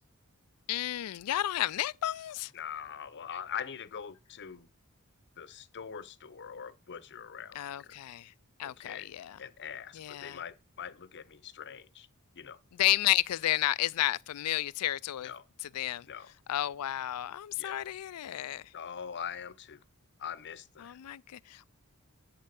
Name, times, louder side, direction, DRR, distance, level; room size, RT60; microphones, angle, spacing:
voice 1, 0.7-2.5 7.5-8.3 8.6-9.4 9.9-10.4 12.7-15.3 15.6-16.1 16.5-18.6 20.8-21.7, left 14 dB, 90° left, 0.4 m, -32 dB
voice 2, 2.5-4.7 5.4-7.9 8.6-9.1 9.4-12.1 12.3-12.6 15.2-15.4 16.1-16.3 17.6-17.8 18.7-19.8 20.2-21.0, left 8 dB, 50° left, 0.7 m, -42 dB
11.0 x 4.5 x 5.9 m
head